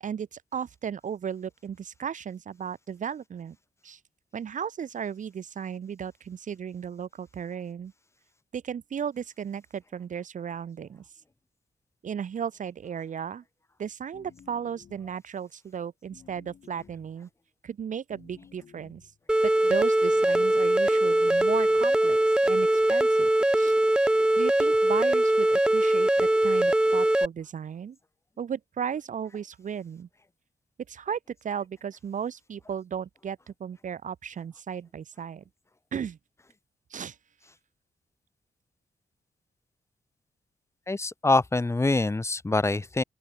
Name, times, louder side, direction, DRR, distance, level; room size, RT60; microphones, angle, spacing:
voice 1, 0.0-3.6 3.8-4.0 4.3-7.9 8.5-11.0 12.0-13.4 13.8-17.3 17.6-19.0 19.4-23.3 23.6-23.8 24.0-28.0 28.4-30.1 30.9-35.4 35.9-36.2 36.9-37.2, right 7 dB, 65° right, 1.1 m, -35 dB
sound 1, 14.1-15.3 16.1-17.2 18.1-19.2 20.1-20.6 21.4-22.0, left 7 dB, 70° left, 6.7 m, -55 dB
sound 2, 19.3-27.3, right 1 dB, 5° right, 0.3 m, -22 dB
voice 2, 40.9-43.0, left 2 dB, 20° left, 0.8 m, -25 dB
open air
cardioid pair, 75°, 14 cm